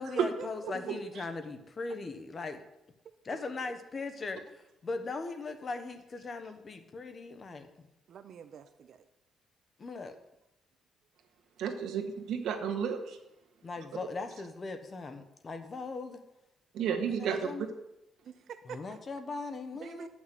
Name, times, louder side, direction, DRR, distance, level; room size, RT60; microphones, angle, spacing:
voice 1, 0.0-2.6 3.2-7.7 9.8-10.1 13.6-16.2 17.1-17.6 18.6-20.1, left 3 dB, 30° left, 8 dB, 1.1 m, -39 dB
voice 2, 0.8-1.2 11.6-13.2 16.8-17.7, right 7 dB, 80° right, 4 dB, 1.4 m, -32 dB
voice 3, 8.1-9.0 18.2-19.0 19.8-20.1, right 7 dB, 60° right, 9 dB, 0.6 m, -47 dB
9.5 x 6.2 x 7.7 m, 0.89 s
cardioid pair, 140°, 0 cm